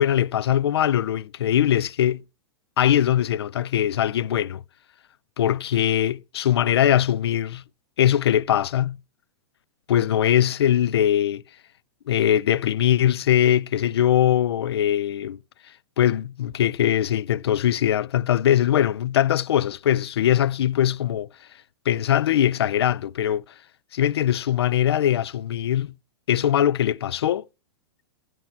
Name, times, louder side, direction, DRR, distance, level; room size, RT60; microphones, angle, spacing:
voice 1, 0.0-2.2 2.8-4.6 5.4-7.6 8.0-9.0 9.9-11.4 12.1-15.4 16.0-21.3 21.9-23.4 23.9-25.9 26.3-27.4, left 11 dB, 70° left, 0.4 m, -21 dB
13.0 x 4.4 x 5.9 m
hypercardioid pair, 110°, 14 cm